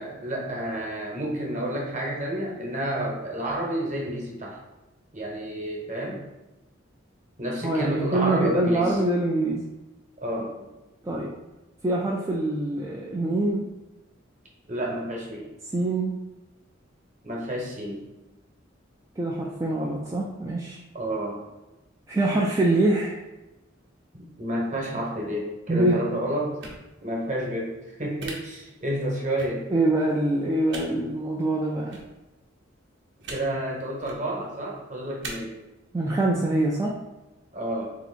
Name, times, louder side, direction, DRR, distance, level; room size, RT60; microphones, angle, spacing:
voice 1, 0.0-4.6 5.1-6.3 7.4-9.0 10.2-10.7 14.7-15.5 17.2-18.0 20.9-21.4 24.4-26.6 27.0-29.7 33.3-35.6 37.5-37.9, right 1 dB, 40° right, -2 dB, 1.1 m, -30 dB
voice 2, 7.6-9.6 11.0-11.4 11.8-13.7 15.7-16.1 19.2-20.8 22.1-23.2 25.7-26.0 29.7-32.0 35.9-37.0, right 2 dB, 15° right, -4 dB, 0.4 m, -24 dB
sound 1, 26.6-26.8 28.2-28.3 29.4-29.5 30.7-30.8 31.9-32.0 33.2-33.4 34.0-34.2 35.2-35.3, right 3 dB, 65° right, 0.8 m, -38 dB
3.5 x 2.8 x 4.2 m, 1.0 s
head